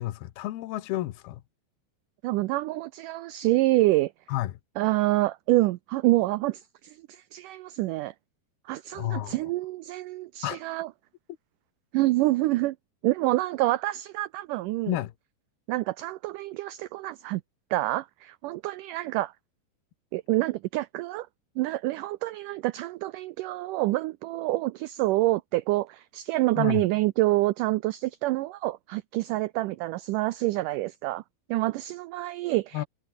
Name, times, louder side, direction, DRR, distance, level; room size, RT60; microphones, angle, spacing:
voice 1, 0.0-1.4 4.3-4.5 8.9-9.3 10.4-10.6 14.9-15.1 26.6-26.8 32.7-32.9, left 15 dB, 80° left, 3.1 m, -30 dB
voice 2, 2.2-4.1 4.8-8.1 8.7-10.9 11.9-12.7 13.0-15.0 15.7-17.4 17.7-19.3 20.1-21.3 21.6-31.2 31.5-32.8, right 18 dB, 85° right, 1.8 m, -27 dB
omnidirectional pair, 4.4 m